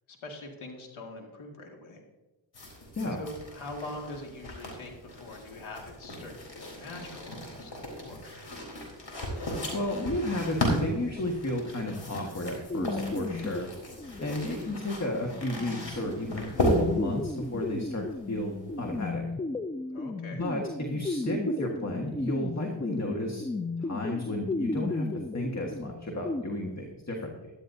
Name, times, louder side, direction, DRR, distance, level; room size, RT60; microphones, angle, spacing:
voice 1, 0.1-2.0 3.1-7.7 8.0-8.4 19.9-20.4, left 2 dB, 85° left, 1 dB, 2.2 m, -43 dB
sound 1, 2.5-19.1, equal, 65° left, 3.8 m, -35 dB
voice 2, 9.7-13.7 14.2-19.2 20.4-23.4 23.8-25.1 25.3-27.5, left 1 dB, 35° left, 1 dB, 1.7 m, -33 dB
sound 2, 12.7-26.4, left 3 dB, 15° left, 0.4 m, -35 dB
13.0 x 12.5 x 2.7 m, 1.1 s
cardioid pair, 60°, 47 cm